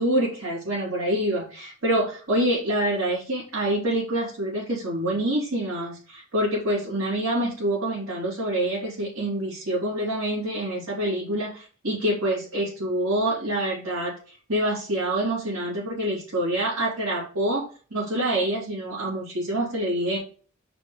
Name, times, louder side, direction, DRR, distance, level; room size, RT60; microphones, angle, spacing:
voice 1, 0.0-20.2, right 1 dB, 85° right, -8 dB, 2.9 m, -26 dB
4.9 x 3.9 x 5.3 m, 0.40 s
head